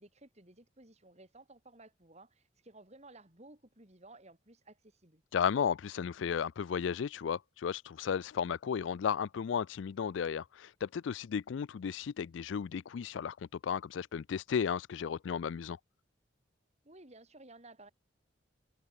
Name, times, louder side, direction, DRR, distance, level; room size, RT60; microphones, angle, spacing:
voice 1, 0.0-5.2 16.8-17.9, right 2 dB, 35° right, 3.5 m, -56 dB
voice 2, 5.3-15.8, left 7 dB, 70° left, 0.4 m, -34 dB
head